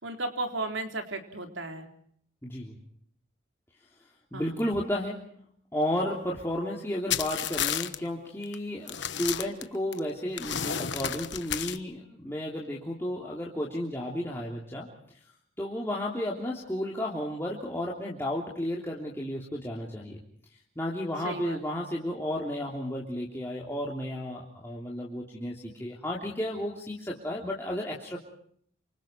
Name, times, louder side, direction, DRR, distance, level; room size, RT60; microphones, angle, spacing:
voice 1, 0.0-1.9 4.3-4.6 21.2-21.6, right 2 dB, 75° right, 4 dB, 4.0 m, -34 dB
voice 2, 2.4-2.8 4.3-5.2 5.7-14.9 15.6-20.2 20.7-28.2, left 1 dB, 10° left, -4 dB, 3.3 m, -33 dB
sound 1, 7.1-8.0 8.4-8.6 8.9-10.0 10.4-11.8, left 9 dB, 65° left, 1.3 m, -31 dB
29.0 x 26.5 x 4.6 m, 0.65 s
head